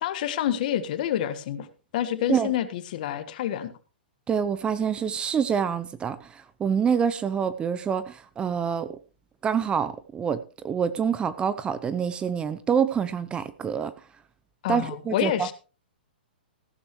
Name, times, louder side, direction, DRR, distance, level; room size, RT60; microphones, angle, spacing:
voice 1, 0.0-1.7 1.9-3.7 14.6-15.5, left 10 dB, 55° left, 1.5 m, -28 dB
voice 2, 4.3-8.9 9.4-13.9 14.7-15.5, right 7 dB, 20° right, 0.7 m, -26 dB
15.0 x 11.5 x 3.1 m
hypercardioid pair, 120°, 5 cm